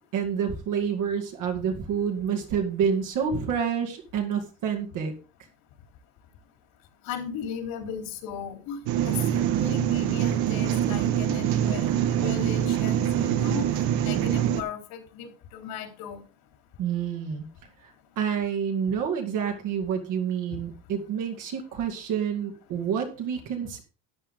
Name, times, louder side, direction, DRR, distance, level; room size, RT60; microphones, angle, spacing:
voice 1, 0.1-5.1 16.8-17.4 18.2-23.8, right 7 dB, 55° right, 2 dB, 2.3 m, -28 dB
voice 2, 7.1-8.8 9.1-13.7 14.0-16.2, left 7 dB, 70° left, 5 dB, 3.6 m, -36 dB
sound 1, 8.9-14.6, right 10 dB, 85° right, 1.9 m, -24 dB
13.0 x 9.5 x 3.7 m, 0.33 s
cardioid pair, 170°, 38 cm